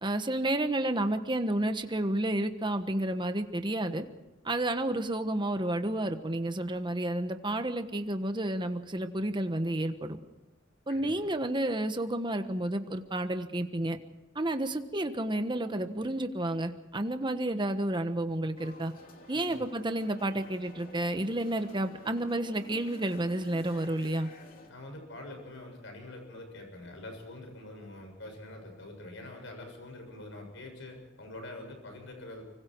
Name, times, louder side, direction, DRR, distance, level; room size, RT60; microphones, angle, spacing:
voice 1, 0.0-4.0 4.4-10.2 10.9-14.0 14.3-18.9 19.3-24.3, right 1 dB, 25° right, 8 dB, 1.3 m, -31 dB
voice 2, 10.9-11.3 19.3-19.6 24.7-32.4, left 2 dB, 65° left, 3 dB, 6.9 m, -45 dB
sound 1, 18.6-24.7, left 1 dB, 45° left, 3.2 m, -51 dB
25.0 x 25.0 x 4.7 m, 1.0 s
head